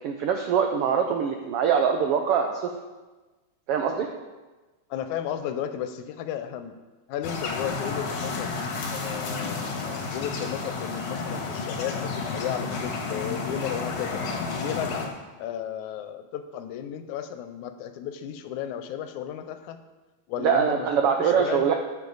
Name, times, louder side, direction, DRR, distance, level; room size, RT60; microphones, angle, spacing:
voice 1, 0.0-2.7 3.7-4.1 20.4-21.7, right 7 dB, 80° right, 4 dB, 1.3 m, -23 dB
voice 2, 4.9-6.8 7.1-8.5 8.9-14.2 14.5-19.8 20.3-21.7, left 9 dB, 85° left, 9 dB, 2.1 m, -34 dB
sound 1, 7.2-15.1, left 4 dB, 60° left, 2.3 m, -31 dB
13.5 x 7.1 x 4.0 m, 1.2 s
omnidirectional pair, 3.4 m